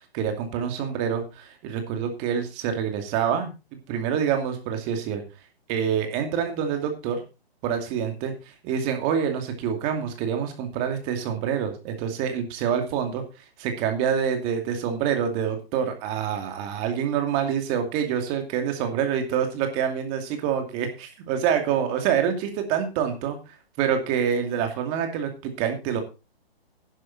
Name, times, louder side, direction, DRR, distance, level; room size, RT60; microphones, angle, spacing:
voice 1, 0.1-3.5 3.9-5.2 5.7-7.2 7.6-13.2 13.6-23.4 23.8-26.0, right 8 dB, 20° right, 5 dB, 2.5 m, -26 dB
11.0 x 11.0 x 4.1 m, 0.30 s
hypercardioid pair, 155°, 31 cm